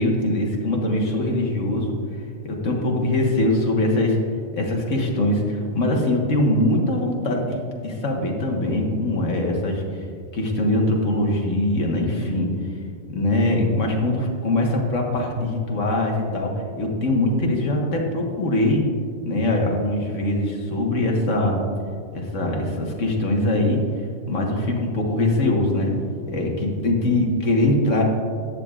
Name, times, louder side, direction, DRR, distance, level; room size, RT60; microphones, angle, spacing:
voice 1, 0.0-1.9 2.4-4.2 4.5-9.8 10.3-12.5 13.1-16.5 16.8-18.8 19.2-21.5 22.1-23.8 24.3-25.9 26.3-28.0, left 1 dB, 65° left, 0 dB, 1.7 m, -22 dB
13.0 x 8.8 x 2.4 m, 2.1 s
omnidirectional pair, 1.4 m